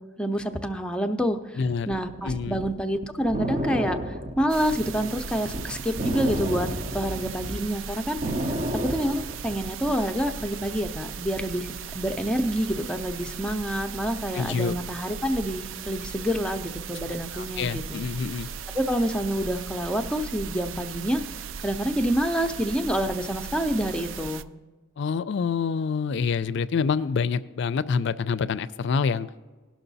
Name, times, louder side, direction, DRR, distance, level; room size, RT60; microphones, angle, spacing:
voice 1, 0.2-1.6 1.9-6.7 6.9-8.2 8.9-18.1 18.7-21.2 21.6-24.5, equal, 5° left, 6 dB, 0.5 m, -27 dB
voice 2, 1.6-1.9 2.2-2.6 14.3-14.8 17.3-18.5 25.0-29.3, left 5 dB, 65° left, 15 dB, 0.4 m, -27 dB
sound 1, 1.9-7.6 8.0-9.9, right 1 dB, 35° right, 0.6 m, -31 dB
sound 2, 4.5-24.4, right 6 dB, 80° right, 0.4 m, -37 dB
17.5 x 6.2 x 4.0 m, 1.3 s
head